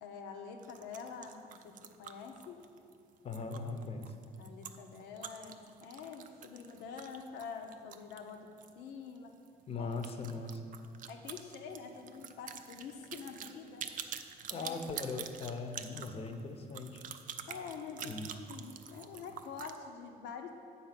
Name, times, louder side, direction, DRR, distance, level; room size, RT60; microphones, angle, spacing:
voice 1, 0.0-2.6 3.8-4.0 4.4-8.5 8.8-9.4 9.7-9.9 11.1-13.9 14.5-14.9 17.5-20.5, left 5 dB, 85° left, 4 dB, 0.8 m, -46 dB
sound 1, 0.6-8.8 9.1-9.2 9.4-9.5 9.9-19.8, right 8 dB, 50° right, 0.5 m, -47 dB
voice 2, 3.2-4.1 9.7-10.6 14.5-17.2 18.0-18.3, left 3 dB, 35° left, 6 dB, 0.7 m, -40 dB
8.3 x 4.2 x 5.8 m, 2.5 s
cardioid pair, 110°, 17 cm